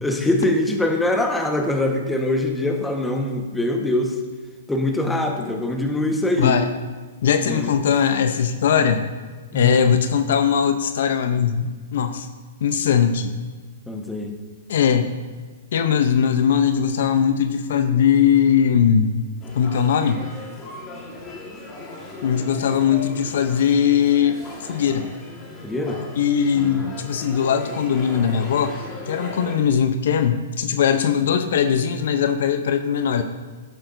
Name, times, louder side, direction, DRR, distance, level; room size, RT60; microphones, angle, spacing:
voice 1, 0.0-4.2 4.7-6.6 7.5-7.7 9.5-9.7 13.9-14.3 25.6-26.0 26.5-26.9, left 1 dB, 5° left, 3 dB, 1.2 m, -23 dB
voice 2, 7.2-9.1 9.5-12.3 12.6-13.4 14.7-15.1 15.7-19.1 19.6-20.2 22.2-24.4 24.7-25.1 26.2-28.8 29.1-33.2, left 8 dB, 65° left, 9 dB, 0.6 m, -20 dB
sound 1, 19.4-29.6, left 2 dB, 25° left, 1.7 m, -37 dB
11.5 x 10.0 x 2.6 m, 1.4 s
hypercardioid pair, 130°, 0 cm